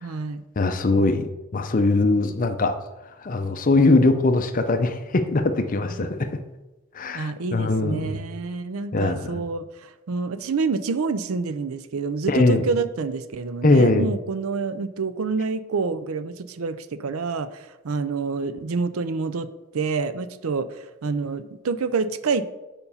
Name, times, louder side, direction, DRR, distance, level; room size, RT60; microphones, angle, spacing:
voice 1, 0.0-0.4 6.0-6.1 7.1-22.5, right 4 dB, 90° right, 12 dB, 0.5 m, -28 dB
voice 2, 0.6-2.8 3.2-6.4 6.9-8.2 8.9-9.4 12.3-12.7 13.6-14.1, left 2 dB, 40° left, 8 dB, 0.6 m, -21 dB
7.0 x 5.3 x 5.6 m, 1.1 s
head